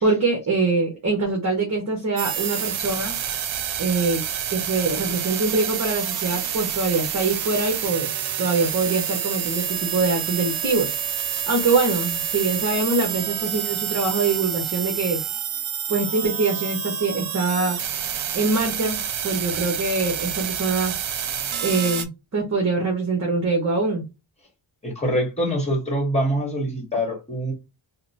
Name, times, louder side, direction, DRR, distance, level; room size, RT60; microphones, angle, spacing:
voice 1, 0.0-3.1 3.8-4.2 4.5-10.9 11.5-15.2 15.9-17.8 18.3-19.0 19.2-21.0 21.6-24.0, right 3 dB, 35° right, 0.9 m, -23 dB
sound 1, 2.2-22.1, right 9 dB, 85° right, 0.6 m, -28 dB
voice 2, 24.8-27.5, equal, 15° left, 1.2 m, -24 dB
2.9 x 2.1 x 3.9 m
wide cardioid pair, 170°, 47 cm